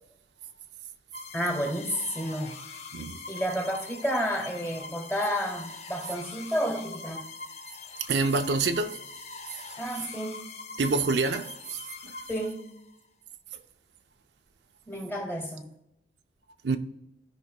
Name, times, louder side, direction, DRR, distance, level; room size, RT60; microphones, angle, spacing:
sound 1, 1.1-13.0, left 3 dB, 35° left, 0.7 m, -43 dB
voice 1, 1.3-2.6 3.3-7.3 9.8-10.4 12.3-12.7 14.9-15.7, equal, 15° left, 1.6 m, -31 dB
voice 2, 8.1-9.0 10.8-11.5 12.0-12.1 16.6-16.8, right 3 dB, 75° right, 0.5 m, -26 dB
14.0 x 5.5 x 2.2 m
head